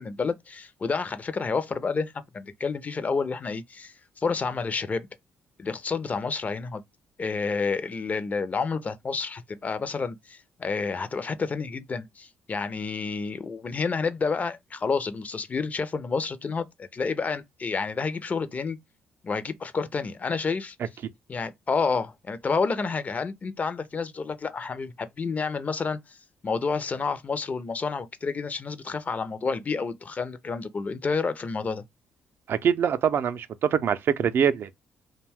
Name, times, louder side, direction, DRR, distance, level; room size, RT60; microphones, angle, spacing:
voice 1, 0.0-5.1 5.6-6.8 7.2-18.8 19.2-20.8 21.3-26.2 26.4-31.8, left 4 dB, 35° left, 0.5 m, -29 dB
voice 2, 32.5-34.7, right 8 dB, 60° right, 0.4 m, -24 dB
2.5 x 2.2 x 3.4 m
supercardioid pair, 70°, 4 cm